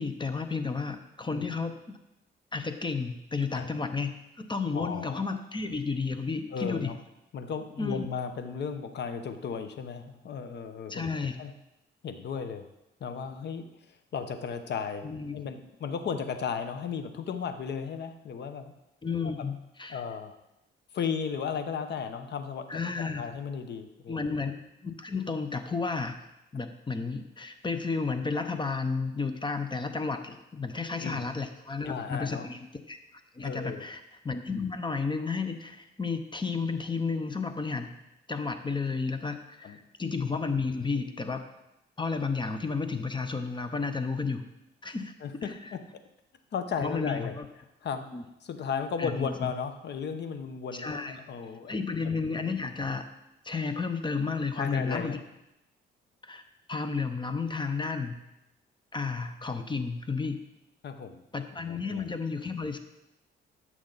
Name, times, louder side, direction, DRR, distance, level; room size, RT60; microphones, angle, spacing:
voice 1, 0.0-1.8 2.5-4.1 4.4-6.9 7.8-8.1 10.9-11.3 15.0-15.4 19.0-20.0 22.7-23.2 24.1-24.5 24.8-26.2 26.5-33.0 33.3-37.9 38.3-41.5 42.0-44.4 44.8-45.1 45.4-45.5 46.8-47.4 48.1-48.2 49.0-49.5 50.7-51.2 51.7-53.1 53.4-55.2 56.2-56.4 56.7-58.2 58.9-60.4 61.3-62.8, left 4 dB, 25° left, 8 dB, 0.8 m, -32 dB
voice 2, 4.7-5.3 6.5-7.0 7.3-11.1 11.4-11.5 12.0-12.6 13.0-13.6 14.1-18.7 19.2-19.5 19.9-20.3 20.9-22.8 23.2-24.2 30.9-31.2 31.8-32.5 33.4-33.8 39.6-39.8 45.2-45.8 46.5-47.4 47.8-48.0 48.4-52.2 54.6-55.2 60.8-61.2 61.6-62.1, left 6 dB, 60° left, 9 dB, 1.0 m, -35 dB
12.5 x 6.3 x 4.0 m, 0.89 s
cardioid pair, 90°, 20 cm